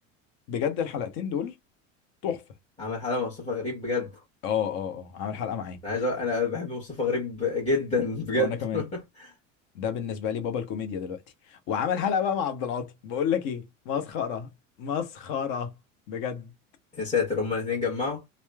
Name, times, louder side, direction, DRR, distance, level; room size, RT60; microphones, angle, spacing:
voice 1, 0.5-1.5 2.2-2.4 4.4-5.8 8.3-8.8 9.7-11.2 11.5-14.5 14.8-15.7 16.1-16.5, left 8 dB, 55° left, 0.7 m, -30 dB
voice 2, 2.8-4.1 5.8-9.3 16.9-18.2, left 3 dB, 15° left, 1.1 m, -28 dB
2.9 x 2.0 x 2.2 m
supercardioid pair, 105°, 38 cm